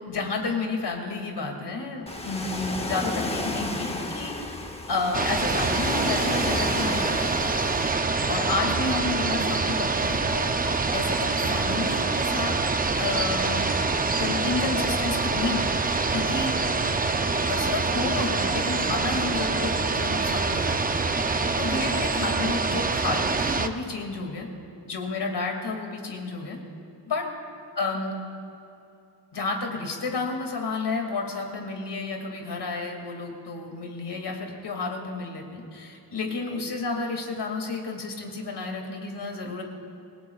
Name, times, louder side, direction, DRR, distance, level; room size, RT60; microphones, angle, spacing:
voice 1, 0.1-4.5 4.9-7.3 8.3-12.6 13.0-13.6 14.2-16.6 17.5-24.5 24.8-26.6 27.1-27.2 27.8-28.2 29.3-39.6, left 3 dB, 70° left, 2 dB, 2.4 m, -31 dB
Ocean, 2.1-7.9, left 2 dB, 15° left, 0.8 m, -32 dB
sound 1, 5.1-23.7, right 3 dB, 20° right, 0.5 m, -25 dB
27.0 x 19.0 x 2.4 m, 2.7 s
wide cardioid pair, 180°, 42 cm